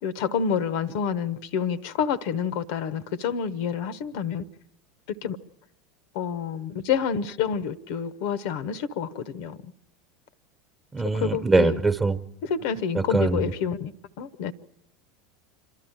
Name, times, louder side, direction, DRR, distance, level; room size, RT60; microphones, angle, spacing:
voice 1, 0.0-4.4 5.1-5.4 6.1-9.6 11.1-11.8 12.4-13.9 14.2-14.5, left 7 dB, 55° left, 0.9 m, -28 dB
voice 2, 10.9-12.2 12.9-13.5, right 3 dB, 15° right, 1.2 m, -22 dB
27.0 x 12.5 x 8.9 m
figure-of-eight pair, 80°, 0 cm